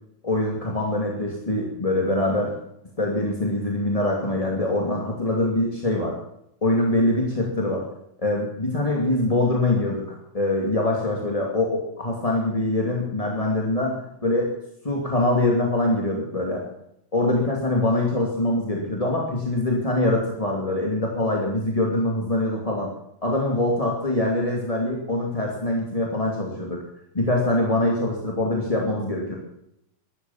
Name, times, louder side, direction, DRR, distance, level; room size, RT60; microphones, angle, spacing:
voice 1, 0.2-2.5 3.0-6.1 6.6-7.9 8.2-10.0 10.3-14.6 14.8-16.6 17.1-22.9 23.2-26.8 27.1-29.4, left 1 dB, 15° left, -1 dB, 1.5 m, -24 dB
14.0 x 12.0 x 7.2 m, 0.78 s
omnidirectional pair, 4.7 m